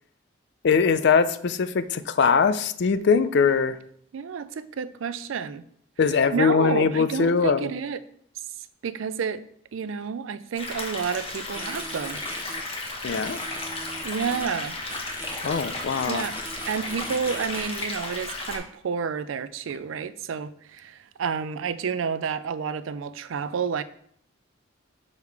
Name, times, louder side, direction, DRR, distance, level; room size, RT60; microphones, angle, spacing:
voice 1, 0.6-3.8 6.0-7.7 13.0-13.4 15.4-16.2, left 5 dB, 60° left, 0.4 m, -21 dB
voice 2, 4.1-5.6 6.3-8.0 8.8-9.4 9.7-12.2 14.0-14.8 16.1-16.3 16.7-23.8, right 6 dB, 75° right, 0.4 m, -30 dB
sound 1, 10.6-18.6, left 2 dB, 30° left, 1.1 m, -34 dB
sound 2, 11.5-12.6 13.2-14.5 14.9-15.6 15.9-17.9, right 2 dB, 10° right, 0.4 m, -40 dB
6.6 x 3.6 x 4.6 m
head